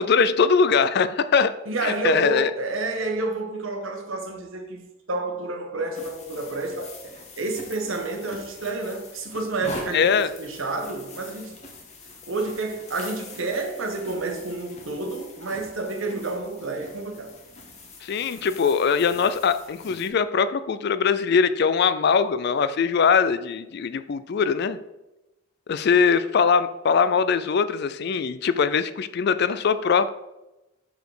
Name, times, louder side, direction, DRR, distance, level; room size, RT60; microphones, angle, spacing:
voice 1, 0.0-1.5 1.8-2.5 9.9-10.3 18.0-24.8 25.7-30.1, left 6 dB, 50° left, 0.4 m, -21 dB
voice 2, 1.7-10.1 10.4-11.6 12.3-17.3, right 3 dB, 75° right, 1.2 m, -30 dB
sound 1, 5.9-20.1, left 2 dB, 35° left, 1.2 m, -43 dB
6.1 x 5.1 x 4.9 m
head